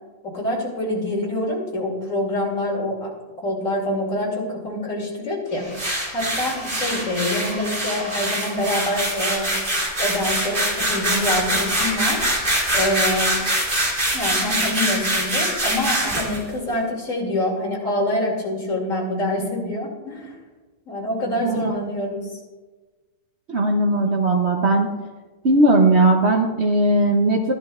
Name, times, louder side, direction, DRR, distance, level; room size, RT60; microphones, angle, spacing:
voice 1, 0.3-3.1 3.4-5.6 6.1-9.5 10.0-12.3 12.7-13.4 14.1-20.3 20.9-22.4, left 1 dB, 40° left, -2 dB, 2.8 m, -25 dB
sound 1, 5.5-11.0, equal, 15° left, 2.9 m, -39 dB
sound 2, 5.7-16.4, right 1 dB, 25° right, 2.6 m, -23 dB
voice 2, 21.4-21.7 23.5-24.9 25.4-27.5, right 2 dB, 70° right, 1 dB, 0.6 m, -18 dB
14.5 x 11.0 x 2.4 m, 1.3 s
omnidirectional pair, 2.2 m